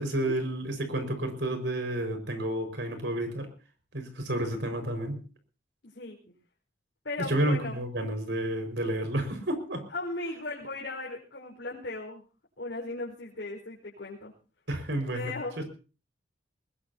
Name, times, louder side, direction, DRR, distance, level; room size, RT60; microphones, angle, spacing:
voice 1, 0.0-3.5 3.9-5.2 7.2-9.8 14.7-15.7, right 1 dB, 70° right, 6 dB, 5.2 m, -30 dB
voice 2, 5.8-6.3 7.0-7.8 9.9-12.2 12.6-14.3 15.1-15.6, left 2 dB, 70° left, -4 dB, 4.8 m, -37 dB
21.5 x 20.5 x 2.8 m, 0.35 s
head